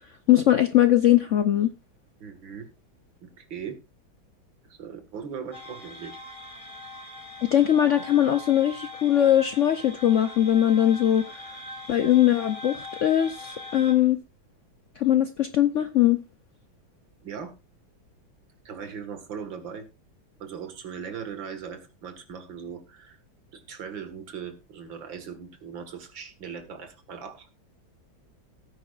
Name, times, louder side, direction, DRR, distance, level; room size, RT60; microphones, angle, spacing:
voice 1, 0.3-1.7 7.4-11.5 11.9-14.2 15.0-16.2, left 11 dB, 85° left, 10 dB, 0.6 m, -21 dB
voice 2, 2.2-2.7 3.2-3.8 4.7-6.2 17.2-17.5 18.6-19.9 20.4-23.2 23.5-27.5, right 7 dB, 70° right, 8 dB, 2.5 m, -39 dB
sound 1, 5.5-13.9, left 1 dB, 15° left, 2.2 m, -41 dB
18.0 x 9.2 x 2.5 m, 0.25 s
omnidirectional pair, 2.2 m